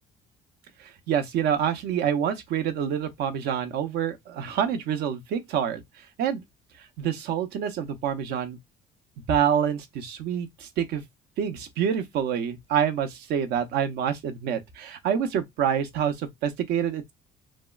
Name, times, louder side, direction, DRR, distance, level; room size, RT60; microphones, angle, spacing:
voice 1, 0.8-5.8 6.2-6.4 7.0-8.6 9.3-11.0 11.4-17.1, right 8 dB, 75° right, 0.6 m, -27 dB
3.4 x 2.1 x 2.2 m
cardioid pair, 110°, 17 cm